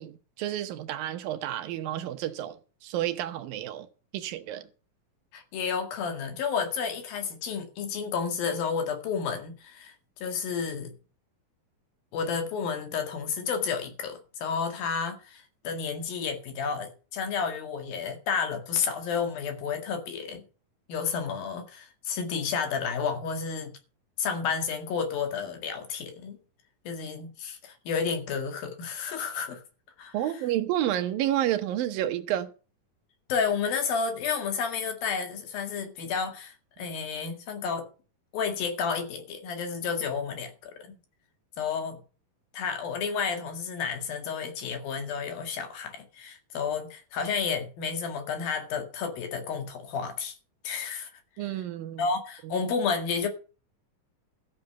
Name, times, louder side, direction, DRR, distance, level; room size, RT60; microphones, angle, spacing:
voice 1, 0.0-3.9 4.1-4.7 30.1-32.5 51.4-52.1 52.4-52.6, right 12 dB, 80° right, 2.7 m, -30 dB
voice 2, 5.3-9.9 10.2-10.9 12.1-20.4 20.9-23.8 24.2-26.4 26.9-29.6 30.0-30.2 33.3-37.9 38.3-41.0 41.6-42.0 42.5-50.4 50.6-51.1 51.4-51.5 52.0-53.3, left 6 dB, 75° left, 3.8 m, -31 dB
14.0 x 6.8 x 6.8 m
omnidirectional pair, 4.2 m